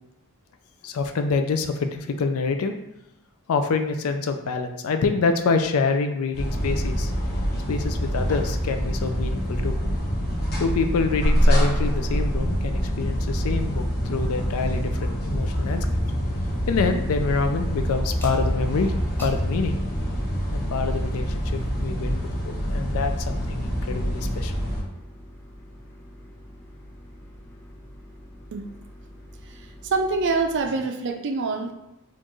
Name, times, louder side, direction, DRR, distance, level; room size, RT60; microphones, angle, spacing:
voice 1, 0.8-2.7 3.5-7.1 7.7-9.8 10.6-15.9 16.7-19.8 20.5-24.5, left 4 dB, 70° left, 7 dB, 0.4 m, -26 dB
sound 1, 6.3-24.8, equal, 45° left, 0.9 m, -25 dB
sound 2, 13.2-30.6, equal, 10° left, 0.5 m, -45 dB
voice 2, 29.4-31.7, right 3 dB, 55° right, 5 dB, 0.4 m, -26 dB
4.3 x 2.5 x 3.0 m, 0.88 s
head